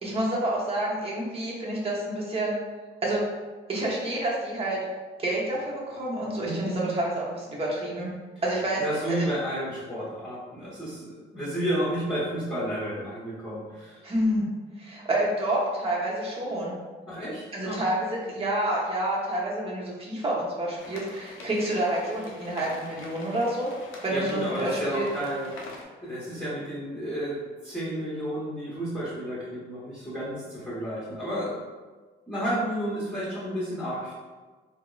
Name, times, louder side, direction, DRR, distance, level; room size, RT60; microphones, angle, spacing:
voice 1, 0.0-2.5 3.0-3.2 3.7-4.8 5.2-8.1 8.4-8.8 9.1-9.3 14.0-14.5 14.8-16.7 17.5-23.7 24.0-25.1, right 1 dB, 30° right, -5 dB, 0.9 m, -28 dB
voice 2, 6.4-6.8 8.8-14.0 17.1-17.8 24.1-25.5 26.0-31.5 32.3-34.1, equal, 5° left, -11 dB, 1.2 m, -31 dB
sound 1, 20.8-25.8, left 2 dB, 80° left, 0.6 m, -45 dB
3.4 x 2.0 x 2.4 m, 1.3 s
cardioid pair, 90°, 20 cm